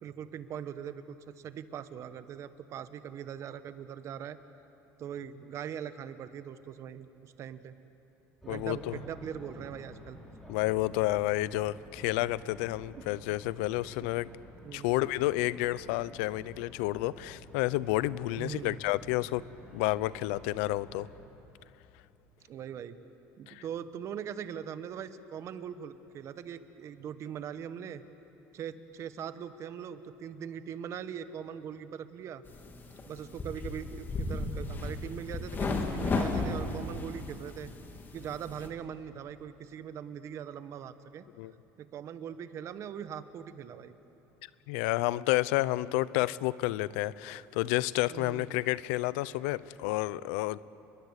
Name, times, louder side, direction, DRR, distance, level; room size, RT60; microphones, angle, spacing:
voice 1, 0.0-4.4 5.0-7.7 8.4-10.2 13.0-13.1 14.6-14.9 18.4-18.8 22.5-23.0 23.4-28.0 28.5-32.4 33.1-37.7 38.1-41.3 41.8-43.9 48.1-48.5, right 8 dB, 45° right, 12 dB, 1.3 m, -41 dB
sound 1, 8.4-21.3, left 1 dB, 5° left, 7.0 m, -51 dB
voice 2, 8.5-9.0 10.5-14.3 14.7-19.4 19.7-21.1 23.5-23.6 41.4-41.5 44.7-50.6, left 18 dB, 90° left, 18 dB, 0.6 m, -30 dB
sound 2, 32.4-38.7, left 3 dB, 30° left, 3.2 m, -35 dB
30.0 x 21.5 x 8.2 m, 3.0 s
cardioid pair, 125°, 7 cm